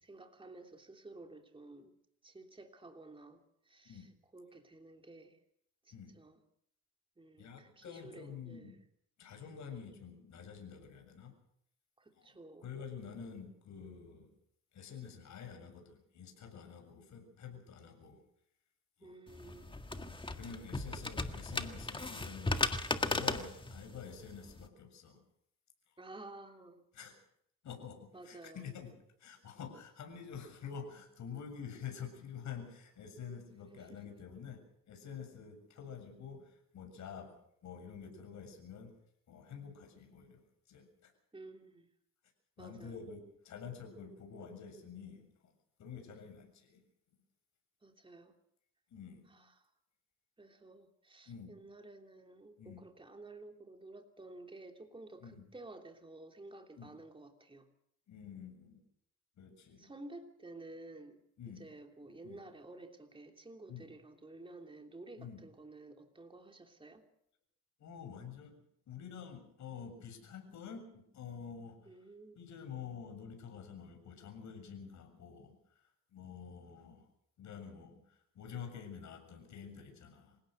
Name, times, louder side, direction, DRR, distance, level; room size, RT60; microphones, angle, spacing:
voice 1, 0.0-1.9 2.2-5.4 5.8-6.4 7.2-8.8 12.0-12.7 19.0-19.8 26.0-26.8 28.1-28.7 33.7-34.1 41.3-41.9 42.6-43.0 47.8-48.4 49.3-49.7 50.4-57.7 59.8-61.2 61.6-67.1 71.8-72.4, right 2 dB, 15° right, 3 dB, 3.2 m, -53 dB
voice 2, 7.4-8.8 9.2-11.3 12.2-12.3 12.6-14.3 14.7-18.2 19.0-19.2 19.9-22.7 23.0-25.2 26.9-27.2 27.6-28.9 29.2-37.4 37.6-38.9 39.3-41.1 42.6-45.5 45.8-46.9 48.9-49.3 51.3-51.6 52.6-52.8 55.2-55.4 56.8-56.9 58.1-58.8 59.4-59.9 61.4-61.7 62.2-62.4 63.7-63.9 65.2-65.4 67.8-68.6 68.9-71.9 72.3-75.6 76.1-77.1 77.4-80.4, left 7 dB, 70° left, 5 dB, 7.2 m, -48 dB
sound 1, 19.3-24.7, left 2 dB, 15° left, 1.8 m, -37 dB
27.0 x 17.0 x 6.7 m, 0.72 s
cardioid pair, 90°, 30 cm